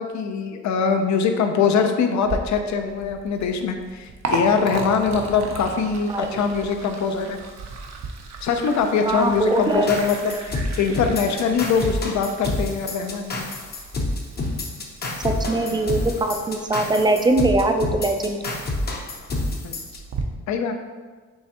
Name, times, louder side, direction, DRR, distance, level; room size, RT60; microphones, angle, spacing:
voice 1, 0.0-7.4 8.4-13.5 19.6-20.0 20.5-20.8, left 5 dB, 70° left, 6 dB, 0.6 m, -23 dB
Liquid, 2.2-20.2, right 3 dB, 60° right, 0.7 m, -36 dB
voice 2, 9.1-9.9 15.2-18.4, right 2 dB, 15° right, 4 dB, 0.4 m, -21 dB
sound 1, 9.9-20.0, left 2 dB, 35° left, 0.7 m, -28 dB
5.5 x 3.3 x 2.9 m, 1.4 s
cardioid pair, 110°, 30 cm